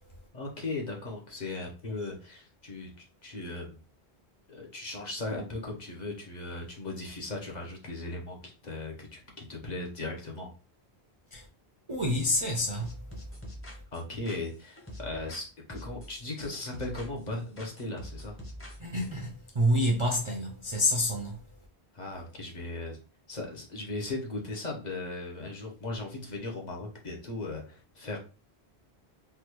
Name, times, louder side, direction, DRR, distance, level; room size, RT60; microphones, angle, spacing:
voice 1, 0.3-3.8 4.5-10.5 13.9-18.4 21.9-23.0 23.3-28.2, left 2 dB, 45° left, 0.8 m, -37 dB
voice 2, 11.9-13.0 18.8-21.5, equal, 40° right, 0.4 m, -28 dB
sound 1, 12.8-15.4 15.7-17.3 17.6-19.2, equal, 15° left, 0.7 m, -44 dB
3.4 x 2.2 x 2.9 m
omnidirectional pair, 1.1 m